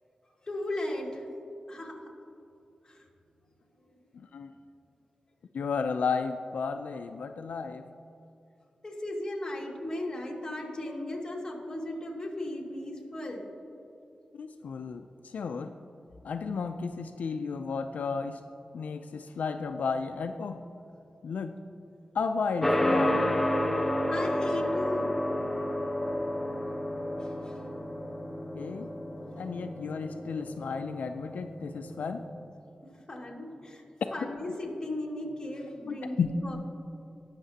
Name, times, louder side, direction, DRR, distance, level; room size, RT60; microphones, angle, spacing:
voice 1, 0.4-1.2 1.7-2.1 2.8-3.0 8.8-13.4 24.1-25.1 27.2-27.6 32.9-33.8 34.1-36.6, left 1 dB, 25° left, -2 dB, 2.0 m, -36 dB
voice 2, 4.1-4.5 5.5-7.9 14.4-15.7 16.2-18.4 18.7-20.6 21.2-21.6 22.1-23.3 28.5-28.9 29.4-32.3 35.9-36.3, left 5 dB, 90° left, 7 dB, 0.4 m, -33 dB
sound 1, 22.6-32.3, left 1 dB, 10° left, 0.8 m, -31 dB
19.0 x 6.6 x 2.8 m, 2.7 s
wide cardioid pair, 85°, 3 cm